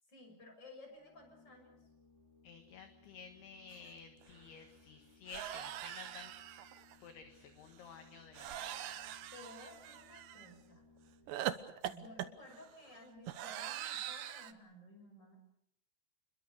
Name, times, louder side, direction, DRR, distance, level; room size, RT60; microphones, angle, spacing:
voice 1, 0.1-1.7 9.3-10.9 11.9-15.4, left 1 dB, 20° left, 4 dB, 6.9 m, -55 dB
Organ, 0.9-11.6, left 4 dB, 5° right, 2.4 m, -65 dB
voice 2, 2.4-6.3 7.0-9.2, left 5 dB, 65° left, 6 dB, 3.4 m, -53 dB
sound 1, 3.9-4.0 4.2-4.4 5.3-6.9 8.3-10.5 11.3-14.5, right 12 dB, 75° right, 2.0 m, -42 dB
29.0 x 22.0 x 6.8 m, 0.77 s
omnidirectional pair, 5.4 m